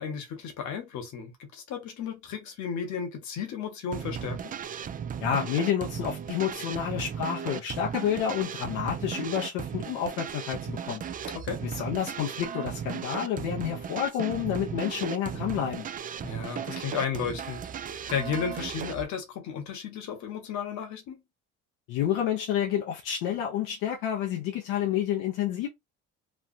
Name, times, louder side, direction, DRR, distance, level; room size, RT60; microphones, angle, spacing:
voice 1, 0.0-4.5 11.3-11.6 16.2-21.2, left 7 dB, 65° left, 1.2 m, -34 dB
sound 1, 3.9-19.0, right 8 dB, 30° right, 0.3 m, -36 dB
voice 2, 5.2-11.0 11.6-15.9 21.9-25.7, left 9 dB, 85° left, 0.8 m, -29 dB
3.1 x 2.2 x 2.6 m
cardioid pair, 95°, 31 cm